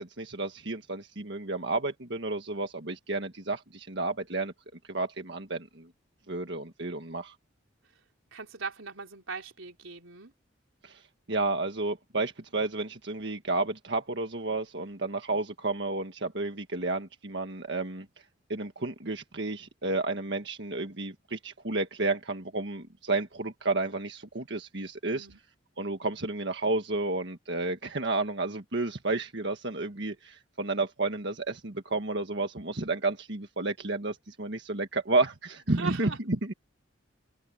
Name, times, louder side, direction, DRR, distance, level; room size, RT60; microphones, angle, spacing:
voice 1, 0.0-4.5 4.9-5.9 6.3-7.3 10.8-11.0 11.3-18.1 18.5-25.3 25.8-36.5, right 2 dB, 60° right, 1.6 m, -31 dB
voice 2, 8.3-10.3 25.1-25.4 35.7-36.2, right 5 dB, 90° right, 4.2 m, -39 dB
open air
head